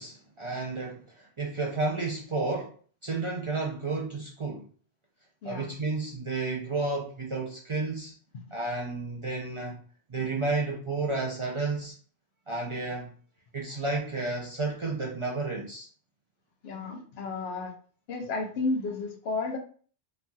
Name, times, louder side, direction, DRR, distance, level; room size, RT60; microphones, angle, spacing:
voice 1, 0.0-2.7 3.0-4.7 5.4-8.1 8.5-9.8 10.1-11.9 12.5-13.1 13.5-15.9, right 3 dB, 40° right, -2 dB, 0.5 m, -31 dB
voice 2, 5.4-5.7 8.3-8.6 16.6-17.7 18.1-19.6, left 3 dB, 80° left, 2 dB, 0.9 m, -32 dB
3.1 x 2.6 x 2.2 m, 0.43 s
omnidirectional pair, 1.0 m